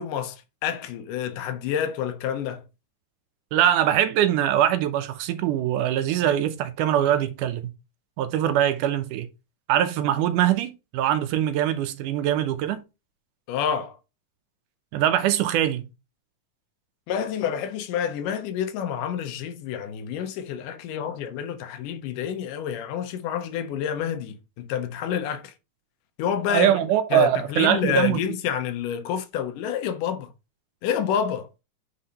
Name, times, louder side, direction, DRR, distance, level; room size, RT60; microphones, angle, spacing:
voice 1, 0.0-2.6 13.5-14.0 17.1-25.5 26.2-26.7 27.1-30.3 30.8-31.5, left 9 dB, 80° left, 2.3 m, -28 dB
voice 2, 3.5-7.7 8.2-9.3 9.7-12.8 14.9-15.9 26.5-28.2, right 11 dB, 80° right, 2.1 m, -22 dB
8.8 x 4.2 x 2.9 m
omnidirectional pair, 3.8 m